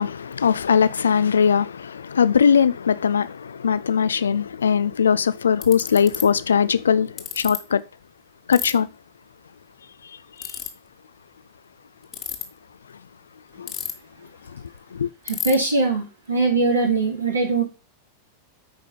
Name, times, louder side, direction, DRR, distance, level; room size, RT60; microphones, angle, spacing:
voice 1, 0.0-7.1 7.4-7.8 8.5-8.9 13.6-13.7 14.9-15.1, left 7 dB, 70° left, 0.5 m, -20 dB
Ratchet pawl, 5.6-6.2 7.2-7.6 8.5-8.7 10.4-10.7 12.0-12.4 13.7-14.2 14.5-14.6 14.8-14.9 15.3-15.6, left 9 dB, 30° left, 1.4 m, -29 dB
voice 2, 15.2-17.6, right 3 dB, 80° right, 3.2 m, -21 dB
8.8 x 4.9 x 5.3 m
figure-of-eight pair, 90°, 0 cm